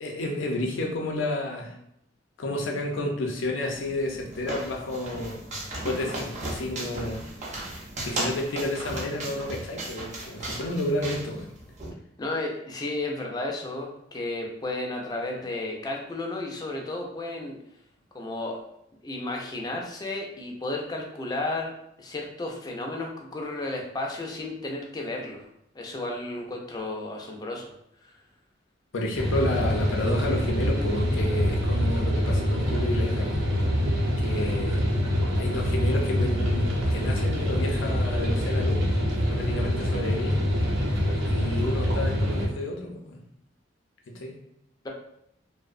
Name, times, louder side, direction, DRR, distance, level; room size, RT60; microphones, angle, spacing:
voice 1, 0.0-1.7 2.4-5.4 5.8-7.2 8.0-11.5 28.9-33.4 34.2-34.8 35.3-38.9 39.1-40.4 41.3-43.2 44.1-44.4, left 1 dB, 90° left, 1 dB, 0.5 m, -31 dB
sound 1, 3.7-11.9, right 1 dB, 40° right, 0.5 m, -36 dB
voice 2, 12.2-17.6 18.1-18.6 19.0-25.5 25.7-27.7, left 2 dB, 20° left, 0 dB, 0.4 m, -33 dB
sound 2, 29.1-42.5, equal, 85° right, 0.7 m, -25 dB
2.6 x 2.0 x 2.4 m, 0.77 s
head